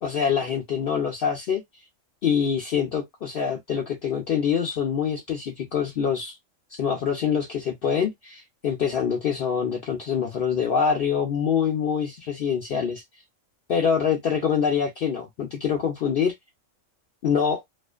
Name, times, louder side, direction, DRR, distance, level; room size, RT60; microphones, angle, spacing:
voice 1, 0.0-1.6 2.2-6.4 6.7-13.0 13.7-16.3 17.2-17.6, left 7 dB, 60° left, 0.7 m, -25 dB
2.4 x 2.4 x 2.3 m
omnidirectional pair, 1.3 m